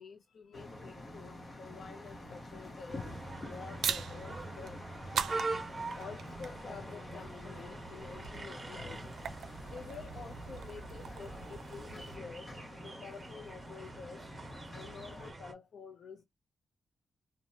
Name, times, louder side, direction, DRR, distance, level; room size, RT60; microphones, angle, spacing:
voice 1, 0.0-3.1 3.5-4.8 5.9-9.1 9.7-12.5 12.8-14.2 14.7-16.2, left 5 dB, 70° left, 0.4 m, -48 dB
sound 1, 0.5-15.3, left 1 dB, 40° left, 1.0 m, -48 dB
sound 2, 2.9-15.5, right 3 dB, 25° right, 1.2 m, -44 dB
sound 3, 3.8-12.2, right 7 dB, 85° right, 0.4 m, -42 dB
3.1 x 2.1 x 2.7 m
cardioid pair, 105°, 0 cm